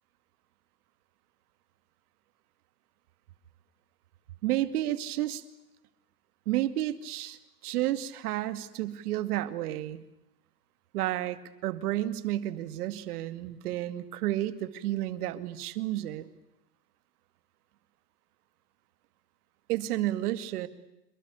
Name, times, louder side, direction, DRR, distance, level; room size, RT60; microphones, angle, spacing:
voice 1, 4.4-5.4 6.5-10.0 10.9-16.3 19.7-20.7, right 14 dB, 65° right, 12 dB, 2.4 m, -31 dB
28.5 x 22.5 x 8.4 m, 0.89 s
hypercardioid pair, 120°, 49 cm